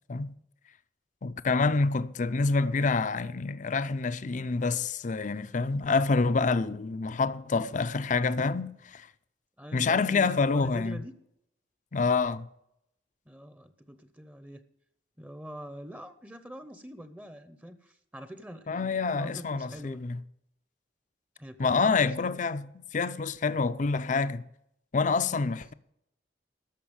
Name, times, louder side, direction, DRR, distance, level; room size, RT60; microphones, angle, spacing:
voice 1, 1.2-9.1 9.7-11.0 11.9-12.5 18.7-20.2 21.6-24.4 24.9-25.7, left 4 dB, 45° left, 0.5 m, -27 dB
voice 2, 9.6-11.1 13.3-14.6 15.2-20.0 21.4-21.8 22.2-22.4 25.4-25.7, equal, 10° right, 0.7 m, -44 dB
13.0 x 5.6 x 8.8 m
head